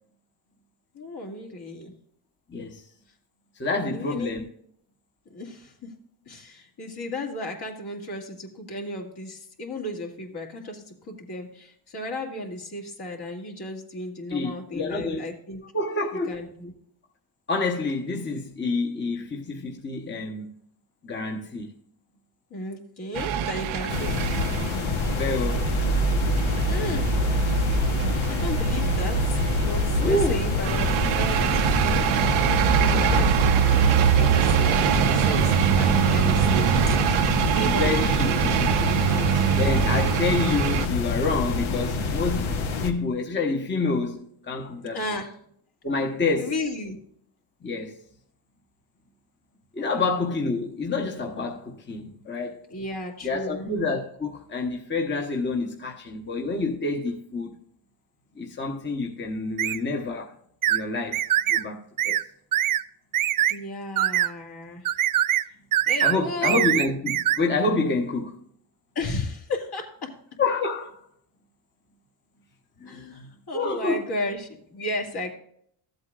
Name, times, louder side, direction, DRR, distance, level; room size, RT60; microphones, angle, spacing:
voice 1, 0.9-1.9 3.8-4.3 5.3-5.7 6.3-15.6 16.3-16.7 22.5-24.1 26.7-27.1 27.5-27.7 28.1-30.9 31.1-33.8 34.2-37.2 37.5-39.5 44.9-45.3 46.4-47.0 49.8-50.1 52.7-53.7 63.5-64.9 65.4-65.6 65.9-66.7 69.0-70.1 72.9-75.3, left 1 dB, 55° left, 2.3 m, -34 dB
voice 2, 2.5-2.8 3.5-4.4 14.3-15.2 15.7-16.4 17.5-20.5 21.0-21.7 23.8-23.9 25.1-25.7 29.9-30.4 32.9-33.3 37.6-38.7 39.5-45.0 45.8-46.5 47.6-48.0 49.7-52.6 53.2-57.5 58.4-60.3 60.7-62.2 66.0-68.4 70.4-71.0 72.8-73.3 73.5-74.0, left 3 dB, 25° left, 1.0 m, -28 dB
sound 1, 23.2-40.9, right 8 dB, 90° right, 0.7 m, -23 dB
sound 2, 23.9-42.9, left 4 dB, 80° left, 1.2 m, -27 dB
sound 3, 59.6-59.8 60.6-60.8 61.1-61.6 62.0-62.2 62.5-62.8 63.1-63.6 64.0-64.3 64.9-65.5 65.7-66.2 66.4-67.4, right 12 dB, 45° right, 0.5 m, -23 dB
14.0 x 8.0 x 2.4 m
cardioid pair, 95°, 46 cm